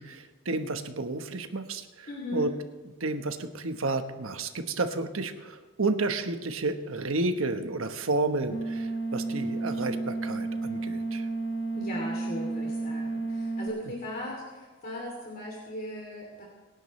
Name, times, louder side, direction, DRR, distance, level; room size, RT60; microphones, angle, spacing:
voice 1, 0.0-2.5 3.0-11.3, right 3 dB, 80° right, 7 dB, 1.2 m, -31 dB
voice 2, 2.1-2.5 11.7-16.4, left 1 dB, 45° left, -2 dB, 2.9 m, -38 dB
sound 1, 8.5-13.7, right 3 dB, 80° left, 2.6 m, -32 dB
25.5 x 11.0 x 3.2 m, 1.3 s
head